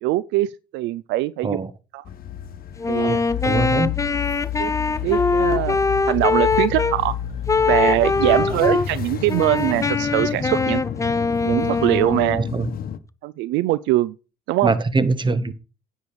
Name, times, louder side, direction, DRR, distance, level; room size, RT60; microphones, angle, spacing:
voice 1, 0.0-1.6 1.9-2.0 2.9-3.2 4.6-4.7 5.0-5.8 6.1-7.1 7.6-10.8 11.4-12.5 13.2-14.1 14.5-14.7, right 16 dB, 75° right, 0.5 m, -22 dB
sound 1, 2.0-13.0, left 9 dB, 50° left, 1.1 m, -30 dB
Wind instrument woodwind instrument, 2.8-7.0 7.5-8.9 9.3-12.5, left 4 dB, 15° left, 0.6 m, -22 dB
voice 2, 2.9-3.9 8.4-8.6 12.5-12.7 14.6-15.5, right 3 dB, 25° right, 1.3 m, -23 dB
9.6 x 5.2 x 6.8 m
supercardioid pair, 75°, 19 cm